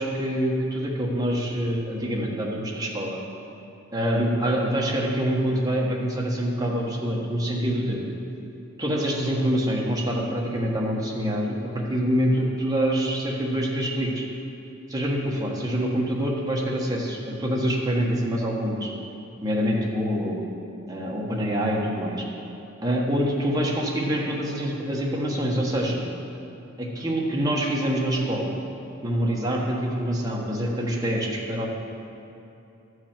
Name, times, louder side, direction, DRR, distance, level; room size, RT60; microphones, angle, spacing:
voice 1, 0.0-3.2 3.9-8.0 8.8-14.2 14.9-18.9 19.4-20.4 20.9-22.2 22.8-26.1 26.8-28.6 29.0-31.7, equal, 20° right, -3 dB, 1.4 m, -25 dB
12.0 x 4.9 x 7.5 m, 2.8 s
head